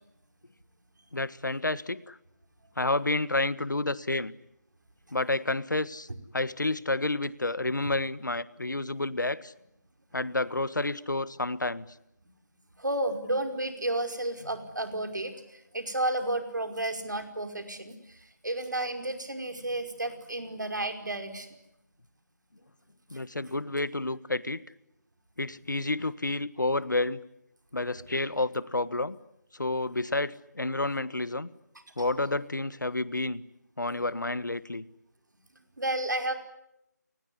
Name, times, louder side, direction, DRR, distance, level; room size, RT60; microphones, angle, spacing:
voice 1, 1.1-2.2 2.8-4.3 5.1-6.1 6.3-9.5 10.1-11.8 23.1-24.6 25.4-27.2 27.7-29.2 29.6-31.5 32.0-33.4 33.8-34.8, left 2 dB, 90° left, 17 dB, 1.5 m, -30 dB
voice 2, 12.8-21.5 23.1-23.2 32.0-32.1 35.8-36.3, right 1 dB, 80° right, 6 dB, 5.1 m, -32 dB
29.0 x 20.0 x 10.0 m, 0.84 s
figure-of-eight pair, 165°, 10 cm